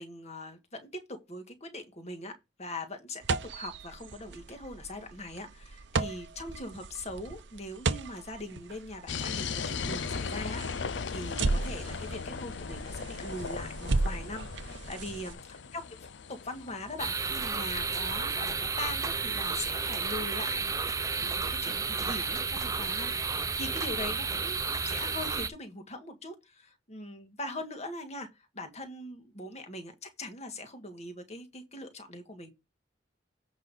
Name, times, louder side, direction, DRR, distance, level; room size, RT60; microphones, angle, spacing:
voice 1, 0.0-2.3 2.6-3.2 3.5-15.3 15.7-15.8 16.3-20.7 21.2-32.5, left 2 dB, 40° left, 1.7 m, -41 dB
sound 1, 3.2-15.3, right 3 dB, 80° right, 0.8 m, -35 dB
sound 2, 9.1-19.8, left 5 dB, 90° left, 0.6 m, -38 dB
sound 3, 17.0-25.5, right 4 dB, 20° right, 0.5 m, -32 dB
7.9 x 5.3 x 4.2 m
head